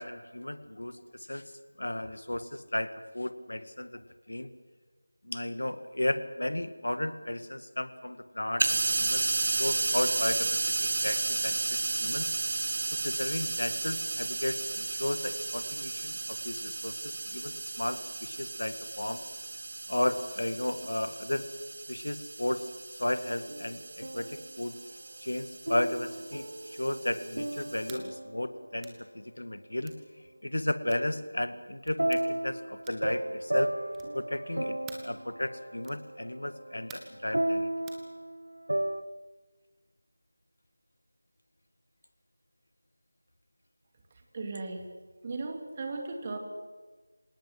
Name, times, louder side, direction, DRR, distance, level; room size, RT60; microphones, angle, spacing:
voice 1, 0.0-1.5 1.8-4.5 5.2-12.3 13.0-19.2 19.9-21.4 21.9-22.7 23.0-24.8 25.2-29.9 30.4-33.7 34.1-34.8 35.0-37.7, left 1 dB, 75° left, 11 dB, 1.9 m, -34 dB
sound 1, 8.6-27.9, right 3 dB, 40° right, 1.3 m, -33 dB
sound 2, 23.3-24.6 25.7-28.9 32.0-39.0, right 1 dB, 80° right, 1.1 m, -34 dB
sound 3, 27.8-28.1 28.8-29.0 29.8-30.0 30.9-31.1 31.8-32.2 32.8-33.2 33.9-34.2 34.9-35.1 35.8-36.1 36.9-37.2 37.9-38.0, right 6 dB, 5° right, 1.4 m, -49 dB
voice 2, 44.3-44.8 45.2-46.4, right 3 dB, 25° right, 3 dB, 2.7 m, -36 dB
26.5 x 18.5 x 7.8 m, 1.4 s
figure-of-eight pair, 170°, 0 cm